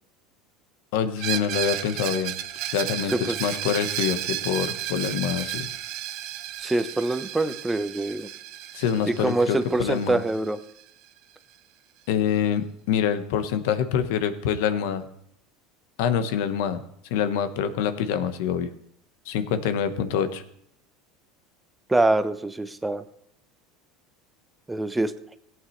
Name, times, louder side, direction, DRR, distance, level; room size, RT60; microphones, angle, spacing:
voice 1, 0.9-2.3 2.7-5.7 8.7-10.2 12.1-15.0 16.0-16.8 17.1-18.7 19.3-20.4, left 8 dB, 75° left, 10 dB, 1.1 m, -26 dB
Screech, 1.2-10.8, right 12 dB, 60° right, 0.8 m, -33 dB
voice 2, 6.6-8.3 9.1-10.6 21.9-23.0 24.7-25.1, right 2 dB, 10° right, 11 dB, 0.8 m, -24 dB
17.0 x 9.0 x 3.2 m, 0.71 s
hypercardioid pair, 95°, 0 cm